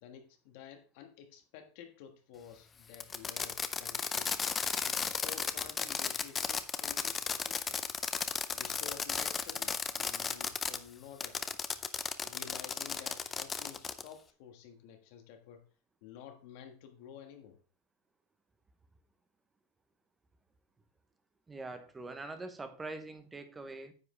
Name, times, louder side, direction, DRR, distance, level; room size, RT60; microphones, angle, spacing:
voice 1, 0.0-4.3 4.8-7.8 8.5-11.5 12.2-15.6 16.0-17.6, left 9 dB, 45° left, 6 dB, 1.5 m, -51 dB
Fireworks, 2.9-10.8 11.2-14.1, left 6 dB, 15° left, 0.4 m, -35 dB
voice 2, 21.5-23.9, right 3 dB, 10° right, 9 dB, 0.8 m, -43 dB
9.6 x 7.7 x 3.2 m, 0.36 s
supercardioid pair, 180°, 0 cm